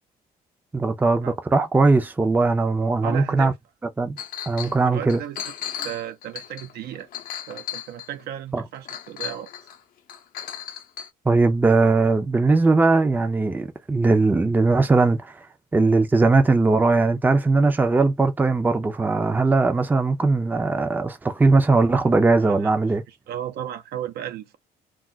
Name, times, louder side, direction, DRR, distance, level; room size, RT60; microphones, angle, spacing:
voice 1, 0.7-3.5 4.0-4.2 4.5-5.2 8.5-8.6 11.3-15.3 15.7-23.0, right 3 dB, 10° right, 0.5 m, -19 dB
voice 2, 3.0-3.6 4.2-4.3 4.8-5.5 5.8-7.1 7.5-9.5 22.4-22.7 23.1-24.6, right 11 dB, 70° right, 0.6 m, -34 dB
Chink clink, 4.2-4.8 5.1-8.2 8.9-9.8 10.1-11.1, left 9 dB, 55° left, 0.7 m, -35 dB
2.3 x 2.1 x 3.8 m
cardioid pair, 110°, 17 cm